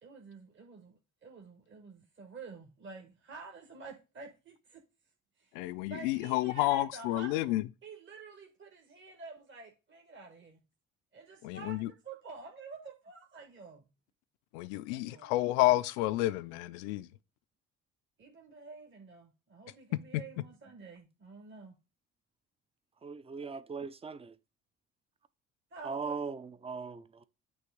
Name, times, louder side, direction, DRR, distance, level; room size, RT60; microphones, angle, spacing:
voice 1, 0.0-4.8 5.4-5.5 5.9-7.6 7.8-10.6 11.1-13.9 14.9-15.3 18.2-21.8 25.7-26.2, right 4 dB, 30° right, 1.3 m, -49 dB
voice 2, 5.5-7.6 11.4-11.9 14.5-17.1, left 17 dB, 70° left, 0.5 m, -30 dB
voice 3, 23.0-24.4 25.8-27.3, right 5 dB, 15° right, 0.5 m, -39 dB
8.6 x 3.2 x 4.7 m
hypercardioid pair, 50°, 37 cm